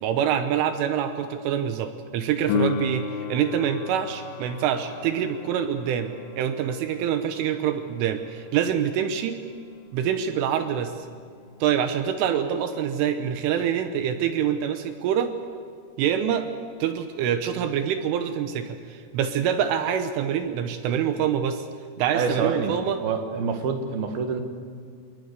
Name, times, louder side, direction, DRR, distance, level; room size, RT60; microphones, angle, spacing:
voice 1, 0.0-9.4 9.9-11.1 11.6-15.3 16.0-16.5 16.8-21.7 22.0-23.0, right 9 dB, 80° right, 8 dB, 3.5 m, -25 dB
Piano, 2.5-12.9 20.4-20.5, left 6 dB, 65° left, 2.3 m, -35 dB
voice 2, 22.1-22.7 23.0-24.4, right 5 dB, 60° right, 5 dB, 3.2 m, -26 dB
27.0 x 21.0 x 8.2 m, 2.2 s
omnidirectional pair, 5.8 m